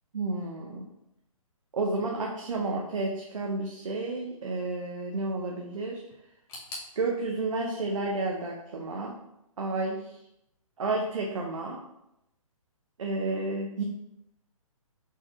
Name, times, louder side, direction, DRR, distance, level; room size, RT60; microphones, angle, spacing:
voice 1, 0.1-0.9 1.7-6.0 7.0-9.1 9.6-10.1 10.8-11.8 13.0-13.8, right 3 dB, 65° right, -1 dB, 0.7 m, -31 dB
sound 1, 6.5-9.4 9.6-10.4 10.7-10.8 11.7-11.8, left 2 dB, 15° left, 0.9 m, -48 dB
4.8 x 4.2 x 2.4 m, 0.84 s
figure-of-eight pair, 130°, 18 cm